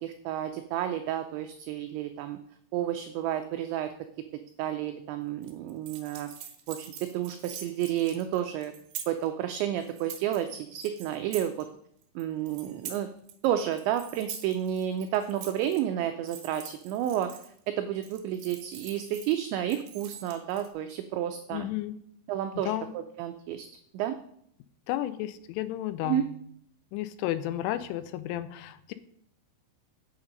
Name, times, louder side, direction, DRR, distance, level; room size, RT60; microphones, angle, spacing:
voice 1, 0.0-2.4 2.7-3.9 4.6-6.3 6.7-8.7 9.1-11.7 12.2-13.1 13.4-21.7 22.3-23.7 23.9-24.2 26.0-26.2, right 11 dB, 85° right, 7 dB, 2.5 m, -31 dB
sound 1, 5.4-9.3 9.8-10.5 10.8-11.6 12.0-13.5 13.7-15.8 16.2-17.7 18.0-19.4 19.7-20.7, right 9 dB, 70° right, 2.6 m, -44 dB
voice 2, 21.5-22.0 22.6-22.9 24.9-26.3 26.9-28.9, left 13 dB, 85° left, 13 dB, 2.9 m, -32 dB
8.6 x 8.2 x 5.2 m, 0.69 s
omnidirectional pair, 5.8 m